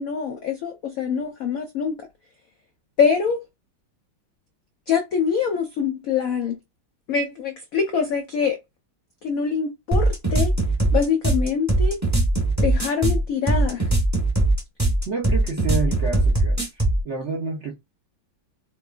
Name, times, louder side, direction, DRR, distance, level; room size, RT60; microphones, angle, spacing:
voice 1, 0.0-2.1 3.0-3.5 4.9-6.6 7.1-8.6 9.2-10.5 10.9-12.0 12.6-13.9, left 6 dB, 85° left, 0.7 m, -24 dB
sound 1, 9.9-17.0, right 2 dB, 10° right, 0.8 m, -20 dB
voice 2, 15.1-17.7, right 4 dB, 55° right, 0.7 m, -29 dB
4.5 x 2.2 x 2.4 m
omnidirectional pair, 2.1 m